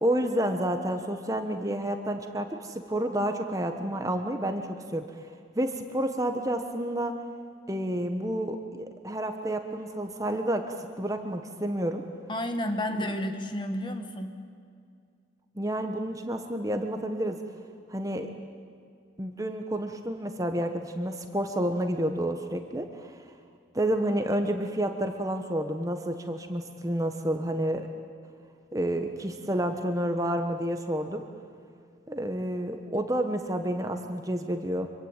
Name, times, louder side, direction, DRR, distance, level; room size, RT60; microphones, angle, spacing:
voice 1, 0.0-5.2 5.5-7.1 7.7-12.0 13.0-13.1 15.5-17.4 17.9-18.3 19.2-23.2 23.7-27.9 28.7-31.3 32.1-34.9, right 1 dB, 20° right, 6 dB, 1.3 m, -30 dB
voice 2, 12.3-14.4, left 1 dB, 25° left, 6 dB, 1.8 m, -31 dB
25.5 x 23.5 x 9.1 m, 2.2 s
head